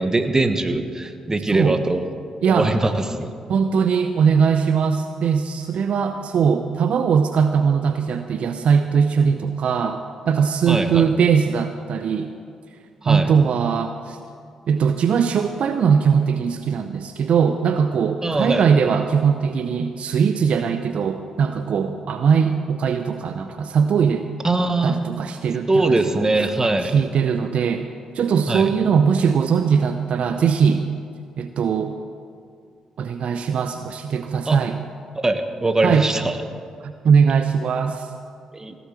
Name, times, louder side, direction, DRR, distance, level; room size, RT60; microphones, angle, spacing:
voice 1, 0.0-2.1 2.5-3.3 10.7-11.1 13.0-13.3 18.2-18.7 24.4-25.0 25.7-27.0 28.5-28.7 34.5-34.6 35.2-36.4 38.5-38.7, right 2 dB, 25° right, 8 dB, 1.3 m, -21 dB
voice 2, 1.5-1.8 2.4-2.7 3.5-12.3 13.1-14.2 14.7-24.3 24.8-26.3 26.8-27.8 28.1-30.8 31.4-31.9 33.0-34.8 35.8-36.1 36.8-38.1, right 6 dB, 60° right, 8 dB, 0.6 m, -20 dB
17.0 x 7.1 x 7.6 m, 2.3 s
hypercardioid pair, 40°, 2 cm